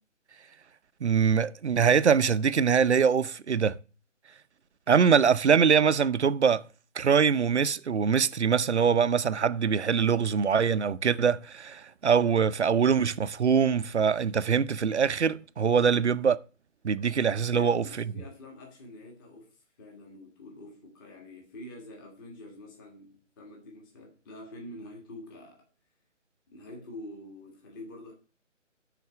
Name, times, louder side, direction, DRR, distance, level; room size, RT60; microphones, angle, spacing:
voice 1, 1.0-3.8 4.9-6.7 6.9-16.4 16.8-17.8, right 6 dB, 60° right, 0.7 m, -23 dB
voice 2, 17.5-25.7 26.5-28.1, left 1 dB, 15° left, 1.6 m, -46 dB
11.0 x 4.3 x 7.8 m
figure-of-eight pair, 150°, 38 cm